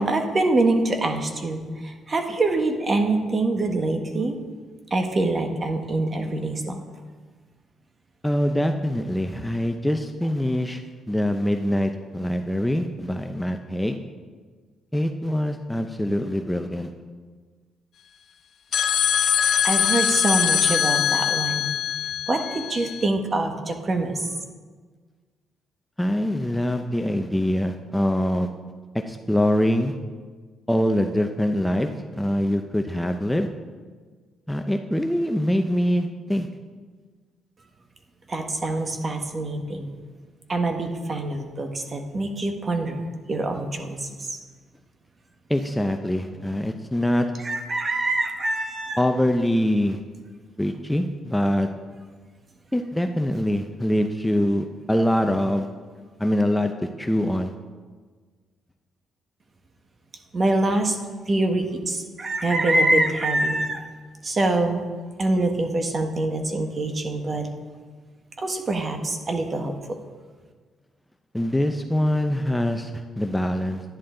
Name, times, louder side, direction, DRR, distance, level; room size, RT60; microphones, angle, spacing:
voice 1, 0.0-4.4 4.9-6.8 19.6-21.7 22.3-24.3 38.3-39.9 40.5-43.0 43.3-44.4 47.4-49.0 60.3-61.0 61.3-63.8 64.2-64.8 65.2-67.5 68.4-69.8, right 2 dB, 35° right, 5 dB, 1.3 m, -25 dB
voice 2, 8.2-10.8 11.1-14.0 14.9-16.9 26.0-28.5 29.1-29.9 30.7-33.5 34.5-36.5 45.5-47.3 49.0-50.0 50.6-51.7 52.7-55.7 56.2-56.7 57.0-57.5 71.3-73.8, left 1 dB, 5° left, 5 dB, 0.6 m, -24 dB
sound 1, 18.7-23.1, left 8 dB, 60° left, 0.5 m, -22 dB
11.0 x 10.5 x 3.8 m, 1.5 s
cardioid pair, 90°, 0 cm